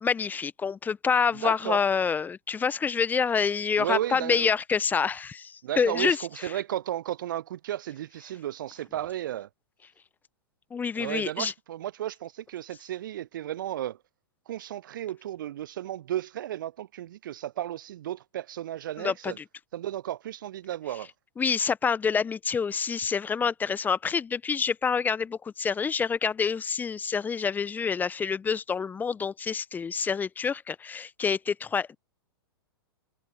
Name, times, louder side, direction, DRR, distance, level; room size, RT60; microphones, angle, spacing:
voice 1, 0.0-6.2 10.7-11.5 19.0-19.4 21.4-32.0, left 6 dB, 15° left, 1.1 m, -27 dB
voice 2, 1.4-1.8 3.8-4.5 5.6-9.5 10.9-14.0 14.5-19.4 19.7-21.1, right 12 dB, 55° right, 0.5 m, -34 dB
figure-of-eight pair, 100°, 13 cm